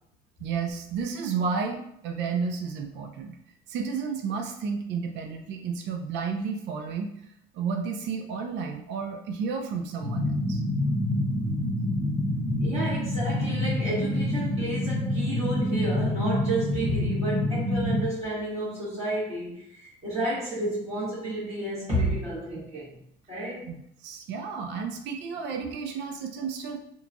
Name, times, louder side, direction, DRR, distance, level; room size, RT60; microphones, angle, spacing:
voice 1, 0.4-3.4 3.7-7.1 7.5-10.6 23.7-23.8 24.0-26.8, right 5 dB, 60° right, 3 dB, 0.4 m, -32 dB
sound 1, 10.0-18.0, left 1 dB, 5° left, 0.8 m, -27 dB
voice 2, 12.5-23.0 23.3-23.7, right 1 dB, 30° right, -10 dB, 1.2 m, -31 dB
2.9 x 2.2 x 2.5 m, 0.72 s
supercardioid pair, 95°, 21 cm